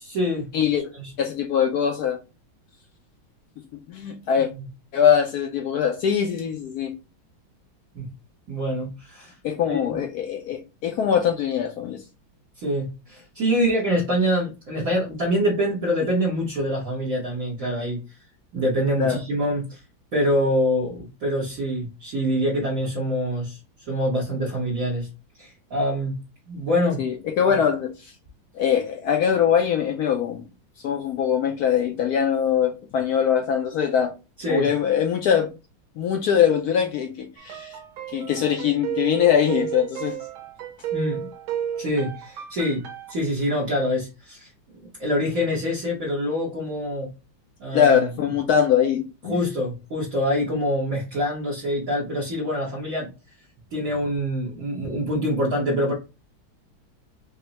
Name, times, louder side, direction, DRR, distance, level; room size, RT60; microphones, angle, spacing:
voice 1, 0.0-0.5 0.9-1.1 7.9-8.1 8.5-9.3 9.7-10.0 12.6-18.0 18.5-19.8 20.1-23.6 23.9-25.1 25.4-26.1 26.5-27.0 27.5-27.6 34.4-34.7 40.9-41.3 41.8-42.8 43.1-44.5 44.8-47.1 47.6-48.0 49.2-53.1 53.7-55.9, equal, 50° right, 1.4 m, -25 dB
voice 2, 1.2-2.2 3.9-4.5 4.9-6.9 9.4-12.0 19.0-19.2 27.0-28.1 28.5-30.4 30.8-34.1 34.5-35.5 36.0-37.8 38.1-40.2 47.7-49.4, left 8 dB, 75° left, 0.9 m, -22 dB
sound 1, 37.4-43.1, right 9 dB, 80° right, 1.5 m, -33 dB
5.2 x 2.2 x 2.8 m
omnidirectional pair, 2.1 m